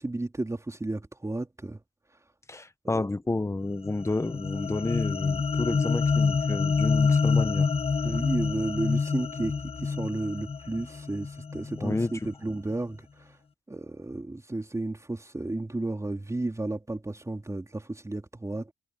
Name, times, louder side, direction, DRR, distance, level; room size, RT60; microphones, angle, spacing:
voice 1, 0.0-1.8 2.8-3.0 8.0-13.4 13.7-18.7, right 2 dB, 15° right, 4.0 m, -33 dB
voice 2, 2.5-7.7 11.8-12.1, left 2 dB, 15° left, 1.5 m, -30 dB
sound 1, 3.9-12.3, left 5 dB, 30° left, 1.5 m, -27 dB
cardioid pair, 90°, 20 cm